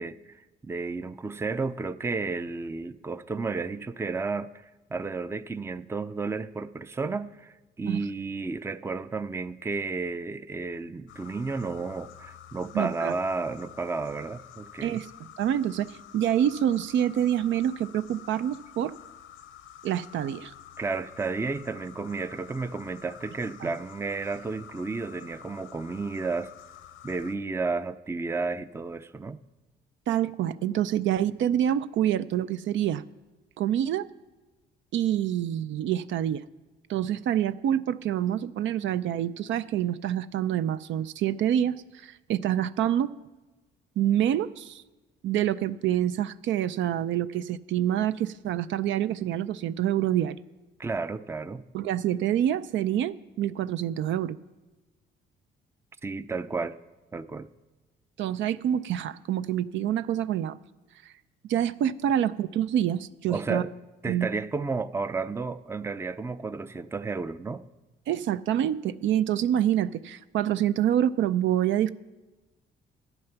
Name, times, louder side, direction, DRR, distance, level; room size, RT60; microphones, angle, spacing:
voice 1, 0.0-4.5 4.9-15.0 20.8-26.5 27.0-29.4 50.8-51.6 56.0-56.8 57.1-57.5 63.3-63.7 64.0-67.6, right 4 dB, 15° right, 0.4 m, -32 dB
sound 1, 11.1-27.4, left 10 dB, 85° left, 0.7 m, -49 dB
voice 2, 12.7-13.1 14.8-18.9 19.8-20.5 23.6-23.7 30.1-33.0 33.6-34.1 34.9-36.4 36.9-41.8 42.0-43.1 44.0-44.8 45.2-50.4 51.7-54.4 58.2-60.6 61.5-63.6 64.1-64.3 68.1-71.9, right 11 dB, 70° right, 0.4 m, -26 dB
11.0 x 7.9 x 5.8 m
cardioid pair, 90°, 20 cm